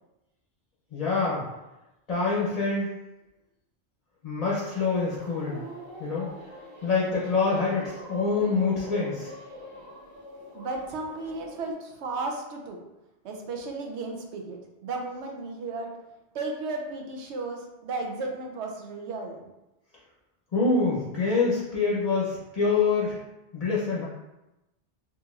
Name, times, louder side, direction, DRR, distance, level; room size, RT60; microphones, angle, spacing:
voice 1, 0.9-1.4 2.1-2.9 4.2-5.6 6.0-6.3 6.8-9.3 20.5-23.2 23.5-24.0, left 4 dB, 40° left, -6 dB, 0.7 m, -25 dB
sound 1, 4.7-11.7, equal, 55° right, 1.3 m, -43 dB
voice 2, 10.5-12.8 13.2-15.9 16.3-19.4, right 3 dB, 80° right, 2 dB, 0.9 m, -34 dB
4.0 x 2.9 x 2.4 m, 0.96 s
omnidirectional pair, 1.2 m